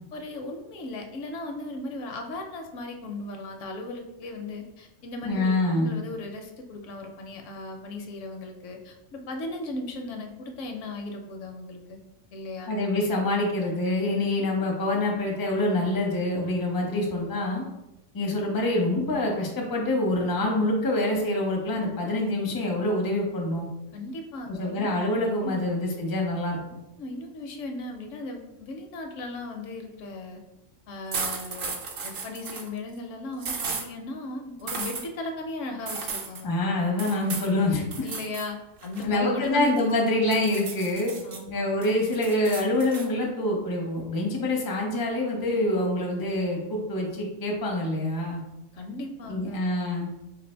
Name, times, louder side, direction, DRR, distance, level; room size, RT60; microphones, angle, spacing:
voice 1, 0.1-12.0 12.3-12.7 23.9-24.9 25.4-25.7 27.0-30.4 30.9-31.7 32.0-36.5 38.0-40.0 41.2-41.5 48.7-49.8, left 2 dB, 75° left, 4 dB, 0.9 m, -37 dB
voice 2, 5.3-5.9 12.7-17.6 18.1-23.7 24.5-26.6 36.4-38.1 39.0-41.2 41.5-48.4 49.3-50.1, left 1 dB, 30° left, 0 dB, 0.4 m, -26 dB
sound 1, 31.1-32.7 33.4-33.9 34.7-35.0 35.9-36.4 37.0-37.5 37.9-38.5 38.8-39.9 40.3-41.4 41.8-43.1, right 5 dB, 55° right, 0.6 m, -34 dB
2.7 x 2.6 x 4.3 m, 0.94 s
omnidirectional pair, 1.4 m